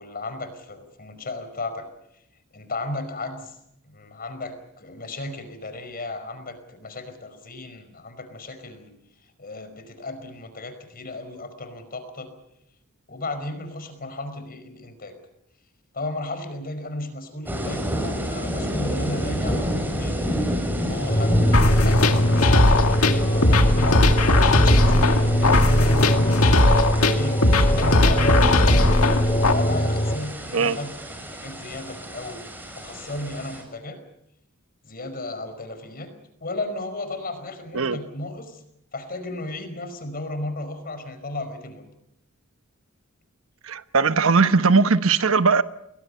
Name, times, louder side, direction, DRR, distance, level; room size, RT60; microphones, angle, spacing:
voice 1, 0.0-1.9 2.5-3.6 3.9-8.9 9.4-12.3 13.1-15.2 15.9-22.2 22.6-24.1 24.3-26.6 27.1-29.0 29.4-32.4 32.7-34.0 34.8-36.1 36.4-38.6 38.9-41.9, left 2 dB, 45° left, 5.1 m, -34 dB
sound 1, 17.5-33.6, equal, 10° right, 6.6 m, -30 dB
sound 2, 21.1-30.2, equal, 30° left, 1.7 m, -22 dB
sound 3, 21.5-29.5, left 2 dB, 75° left, 2.2 m, -19 dB
voice 2, 43.6-45.6, right 4 dB, 70° right, 1.1 m, -19 dB
29.5 x 21.5 x 5.6 m
head